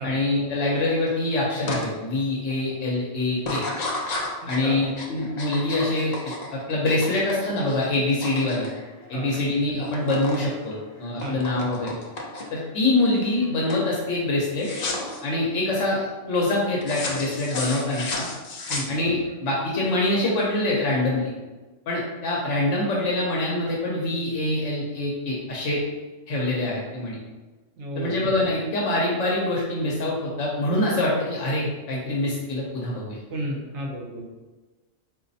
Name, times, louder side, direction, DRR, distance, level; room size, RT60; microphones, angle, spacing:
voice 1, 0.0-3.6 4.5-8.7 9.1-12.0 12.5-14.7 15.2-18.3 18.9-21.3 21.9-25.8 26.3-27.2 28.0-33.2, left 2 dB, 75° left, -4 dB, 1.0 m, -25 dB
sound 1, 1.7-1.8 2.3-2.7 3.4-9.4 9.7-10.4 10.7-12.7 13.1-13.4 13.7-13.9 14.6-15.2 16.8-19.3, left 2 dB, 60° left, 0.4 m, -33 dB
voice 2, 27.8-28.3 33.3-34.2, right 1 dB, 70° right, -1 dB, 0.9 m, -32 dB
3.9 x 2.5 x 2.6 m, 1.2 s
omnidirectional pair, 1.2 m